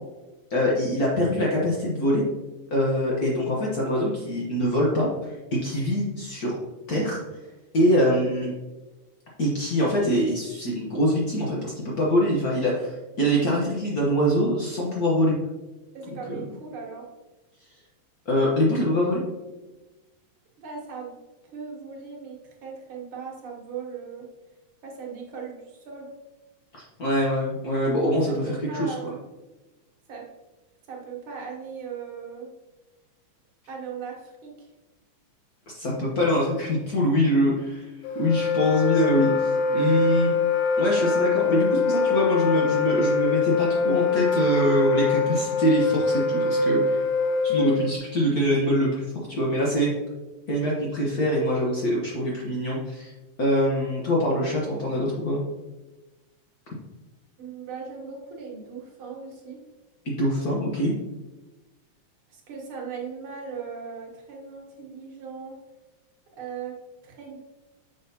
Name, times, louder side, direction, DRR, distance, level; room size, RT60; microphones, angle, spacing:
voice 1, 0.5-2.2 2.7-6.6 6.9-7.2 7.7-8.5 9.4-15.3 16.1-16.4 18.2-19.2 26.7-28.9 35.7-37.9 38.1-40.3 40.8-47.0 47.4-49.9 50.5-53.1 53.4-55.4 60.0-60.9, equal, 60° left, -4 dB, 0.9 m, -24 dB
voice 2, 15.9-17.1 20.6-24.3 24.8-26.1 28.1-29.2 30.1-30.3 30.9-32.5 33.7-34.7 57.4-59.6 62.3-65.6 66.4-66.8 67.0-67.4, right 5 dB, 50° right, -2 dB, 2.0 m, -38 dB
Wind instrument woodwind instrument, 38.0-48.0, left 4 dB, 80° left, 1.4 m, -23 dB
7.1 x 5.9 x 2.8 m, 1.1 s
omnidirectional pair, 3.3 m